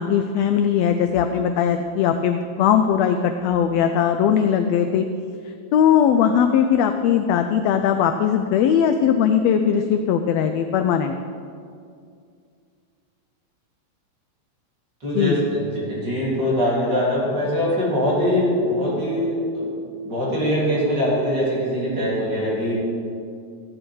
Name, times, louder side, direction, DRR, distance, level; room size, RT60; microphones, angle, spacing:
voice 1, 0.0-5.1 5.7-11.1 15.2-15.4, left 8 dB, 80° left, 7 dB, 1.5 m, -19 dB
voice 2, 15.0-19.7 20.0-22.8, equal, 35° right, -8 dB, 3.9 m, -22 dB
14.0 x 8.7 x 4.6 m, 2.3 s
omnidirectional pair, 3.4 m